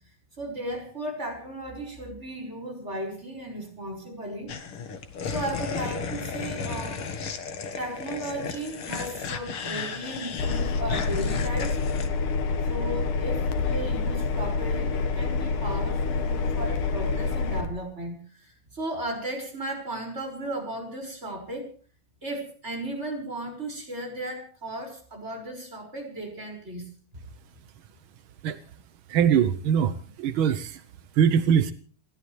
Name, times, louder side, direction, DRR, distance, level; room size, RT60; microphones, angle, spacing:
voice 1, 0.4-4.5 5.3-7.1 7.7-11.8 12.6-21.7 22.2-26.9, right 1 dB, 20° right, 2 dB, 6.0 m, -35 dB
sound 1, 4.5-12.1, left 5 dB, 50° left, 2.4 m, -34 dB
Engine, 10.4-17.7, left 4 dB, 85° left, 3.0 m, -27 dB
voice 2, 29.1-29.9 30.2-30.8 31.2-31.7, right 8 dB, 70° right, 11 dB, 1.2 m, -21 dB
29.5 x 13.0 x 3.3 m, 0.40 s
omnidirectional pair, 3.4 m